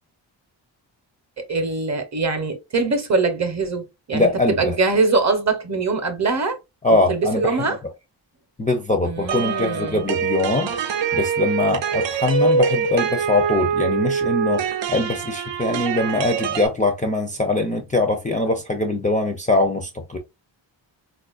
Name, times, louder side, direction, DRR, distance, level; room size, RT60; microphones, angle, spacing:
voice 1, 1.5-4.3 4.6-6.6 6.9-7.8 9.0-10.0, right 3 dB, 35° right, 0.7 m, -22 dB
voice 2, 4.1-4.8 6.8-7.6 8.6-10.7 11.1-20.2, left 2 dB, 20° left, 0.4 m, -22 dB
sound 1, 9.3-16.7, right 5 dB, 70° right, 0.6 m, -24 dB
4.1 x 2.4 x 2.3 m
wide cardioid pair, 140°, 45 cm